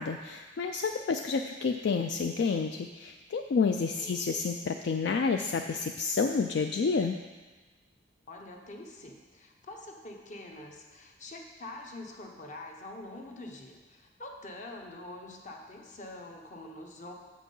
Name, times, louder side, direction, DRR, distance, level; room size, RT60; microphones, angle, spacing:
voice 1, 0.0-7.2, left 5 dB, 65° left, 5 dB, 0.3 m, -29 dB
voice 2, 3.7-4.2 8.3-17.1, left 2 dB, 40° left, 2 dB, 1.0 m, -45 dB
7.4 x 6.0 x 5.4 m, 1.3 s
head